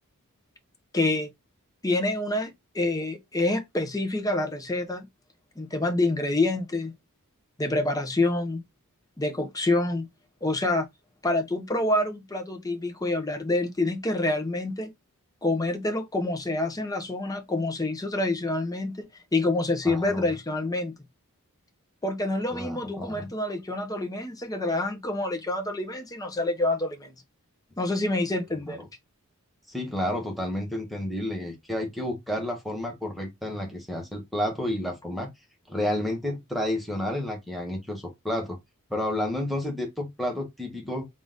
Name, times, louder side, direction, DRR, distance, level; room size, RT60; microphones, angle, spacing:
voice 1, 0.9-1.3 1.8-5.1 5.6-6.9 7.6-8.6 9.2-10.1 10.4-10.9 11.2-14.9 15.4-19.1 19.3-20.9 22.0-27.1 27.8-28.8, left 2 dB, 15° left, 0.7 m, -27 dB
voice 2, 19.8-20.3 22.5-23.3 28.7-28.9 29.7-35.3 35.7-38.6 38.9-41.1, left 1 dB, ahead, 1.0 m, -31 dB
3.8 x 2.5 x 3.6 m
head